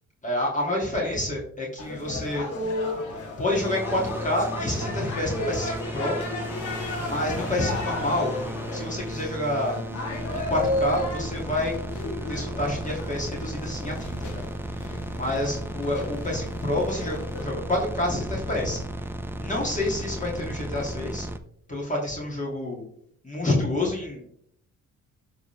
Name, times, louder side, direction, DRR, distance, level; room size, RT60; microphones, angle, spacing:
voice 1, 0.2-2.4 3.4-6.2 7.0-8.3 8.7-9.8 10.5-11.7 12.3-14.4 14.8-18.8 19.4-21.3 21.7-22.8 23.2-24.3, left 1 dB, 25° left, -3 dB, 2.7 m, -28 dB
sound 1, 1.8-17.4, left 1 dB, 75° left, 1.9 m, -34 dB
sound 2, 3.5-21.4, right 1 dB, 5° right, 0.7 m, -35 dB
sound 3, 6.4-10.7, left 3 dB, 50° left, 1.6 m, -41 dB
12.0 x 4.1 x 3.5 m, 0.67 s
cardioid pair, 90°, 30 cm